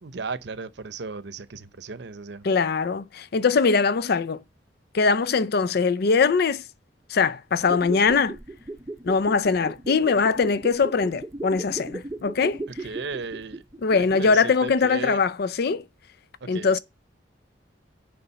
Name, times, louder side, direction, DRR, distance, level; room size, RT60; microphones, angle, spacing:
voice 1, 0.0-2.5 12.7-13.6 14.1-15.2 16.4-16.7, right 4 dB, 70° right, 0.7 m, -35 dB
voice 2, 2.4-4.4 4.9-6.6 7.1-8.4 9.0-12.6 13.8-15.8 16.5-16.8, left 5 dB, 60° left, 0.5 m, -22 dB
sound 1, 7.5-14.4 14.7-14.8, right 2 dB, 15° right, 0.6 m, -36 dB
7.0 x 5.1 x 6.8 m
head